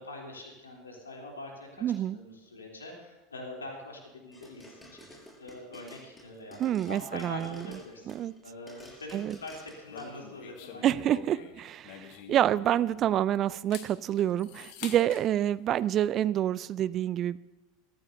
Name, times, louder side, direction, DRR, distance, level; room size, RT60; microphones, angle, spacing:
voice 1, 0.0-1.8 2.1-11.0 11.4-11.5 14.8-15.0, left 2 dB, 80° left, 0 dB, 3.4 m, -44 dB
voice 2, 1.8-2.2 6.6-7.6 8.1-8.3 9.1-9.4 10.8-17.4, right 11 dB, 40° right, 20 dB, 0.4 m, -27 dB
sound 1, 4.3-8.4 8.7-10.1, equal, 10° left, 6.1 m, -51 dB
sound 2, 9.9-13.1 13.5-15.3, left 9 dB, 55° left, 1.5 m, -46 dB
22.0 x 14.5 x 2.8 m, 1.2 s
figure-of-eight pair, 80°, 0 cm